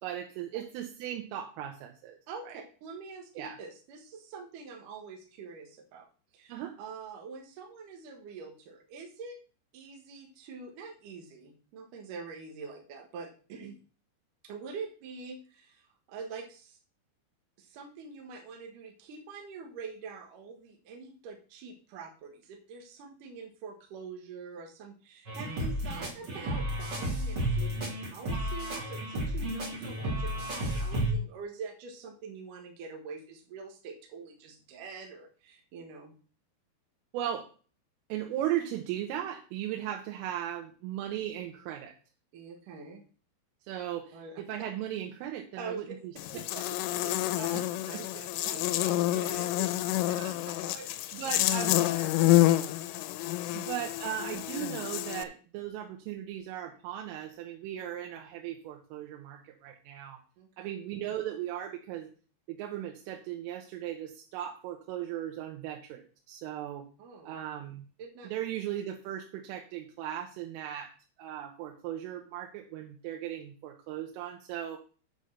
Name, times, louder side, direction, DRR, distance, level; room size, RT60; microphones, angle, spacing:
voice 1, 0.0-2.2 2.5-2.6 3.4-3.6 6.5-6.7 37.1-37.5 38.1-41.9 43.7-46.1 47.0-47.2 47.5-48.0 50.1-50.4 51.1-51.9 53.5-60.2 60.6-62.1 62.5-66.9 67.3-67.8 68.3-70.9 71.2-74.8, right 11 dB, 85° right, 2 dB, 3.6 m, -37 dB
voice 2, 2.3-6.1 6.3-6.5 6.8-9.4 9.7-13.7 14.4-16.8 17.6-36.1 42.3-43.0 44.1-44.4 45.6-45.9 46.3-46.6 47.0-50.2 50.5-51.2 51.8-52.9 53.1-53.3 53.6-53.8 57.7-57.8 60.4-60.7 67.0-67.4 68.0-68.3, right 5 dB, 70° right, 3 dB, 2.0 m, -45 dB
sound 1, 25.3-31.1, right 1 dB, 35° right, 1.8 m, -32 dB
Buzz, 46.2-55.2, left 16 dB, 85° left, 3.1 m, -28 dB
8.4 x 5.2 x 6.5 m, 0.39 s
omnidirectional pair, 5.6 m